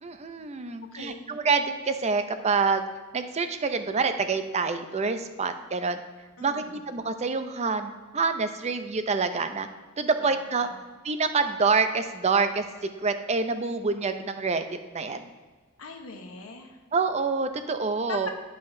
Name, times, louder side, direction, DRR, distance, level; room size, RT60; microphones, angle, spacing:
voice 1, 0.0-2.8 3.1-6.0 6.4-9.7 10.0-10.7 11.0-12.6 13.0-14.6 14.9-15.3 16.9-18.3, right 4 dB, 30° right, 9 dB, 0.5 m, -27 dB
voice 2, 0.6-1.4 6.4-6.8 10.2-10.8 15.8-16.8 18.1-18.3, left 3 dB, 80° left, 3 dB, 1.0 m, -42 dB
10.5 x 5.6 x 2.6 m, 1.4 s
head